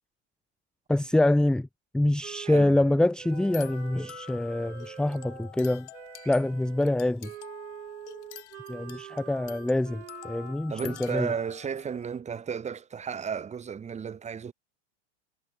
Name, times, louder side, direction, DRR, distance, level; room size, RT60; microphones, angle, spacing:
voice 1, 0.9-1.7 1.9-5.9 6.3-7.3 8.7-11.3, left 1 dB, ahead, 0.7 m, -25 dB
Wind instrument woodwind instrument, 2.2-5.5 5.9-10.6, right 13 dB, 85° right, 2.9 m, -45 dB
sound 1, 3.3-12.2, left 14 dB, 75° left, 5.7 m, -47 dB
voice 2, 10.7-14.5, right 7 dB, 20° right, 2.5 m, -34 dB
hypercardioid pair, 120°, 34 cm